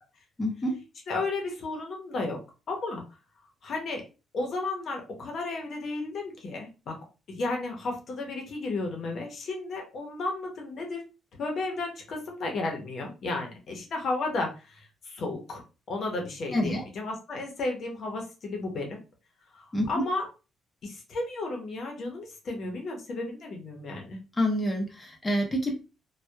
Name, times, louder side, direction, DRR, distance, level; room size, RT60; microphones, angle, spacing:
voice 1, 0.4-0.8 16.5-16.8 19.7-20.0 24.4-25.7, equal, 15° left, 0 dB, 0.7 m, -27 dB
voice 2, 1.1-2.4 2.7-3.0 3.6-4.0 4.3-7.0 7.3-11.0 11.4-19.0 19.5-20.3 20.8-24.2, left 2 dB, 60° left, 2 dB, 0.7 m, -33 dB
2.7 x 2.2 x 2.2 m, 0.31 s
cardioid pair, 90°, 0 cm